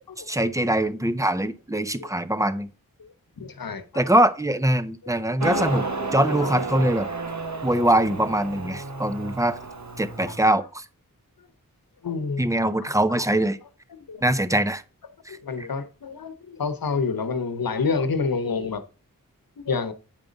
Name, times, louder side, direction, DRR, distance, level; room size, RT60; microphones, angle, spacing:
voice 1, 0.3-2.7 3.9-5.8 6.1-7.1 7.6-9.6 10.0-10.8 12.4-13.6 14.2-14.8, right 1 dB, 10° right, 0.9 m, -22 dB
voice 2, 3.4-4.1 5.0-5.2 6.4-6.5 10.2-10.5 12.0-12.4 12.8-13.3 13.9-14.2 15.3-18.8 19.6-19.9, left 4 dB, 85° left, 1.0 m, -28 dB
Motorcycle, 5.4-10.4, right 3 dB, 55° right, 1.6 m, -31 dB
9.1 x 5.2 x 3.9 m
cardioid pair, 40°, 34 cm